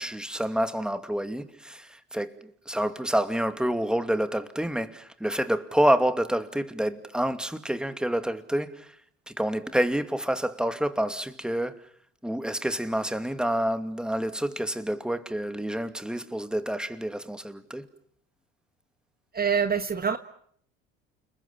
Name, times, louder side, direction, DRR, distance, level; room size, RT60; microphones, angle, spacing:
voice 1, 0.0-8.9 9.4-11.8 12.2-17.8, right 1 dB, 5° right, 2.5 m, -28 dB
voice 2, 19.3-20.2, right 6 dB, 30° right, 1.7 m, -25 dB
30.0 x 21.0 x 8.6 m
hypercardioid pair, 65°, 31 cm